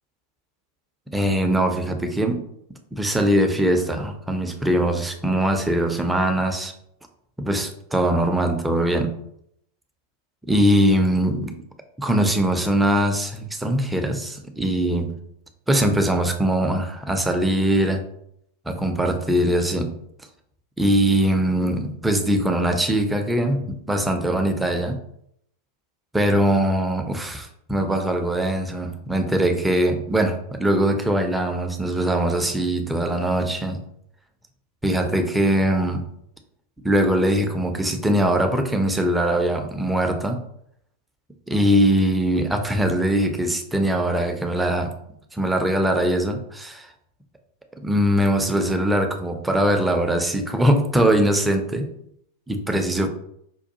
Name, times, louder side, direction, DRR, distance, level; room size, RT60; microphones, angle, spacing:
voice 1, 1.1-2.4 2.9-6.7 7.4-9.2 10.5-11.6 12.0-15.2 15.7-18.0 18.7-19.9 20.8-25.0 26.1-33.8 34.8-36.1 36.8-40.4 41.5-44.9 45.3-46.9 47.8-51.9 52.5-53.1, right 1 dB, 5° right, 5 dB, 0.5 m, -21 dB
5.2 x 2.2 x 2.7 m, 0.73 s
figure-of-eight pair, 90°, 0 cm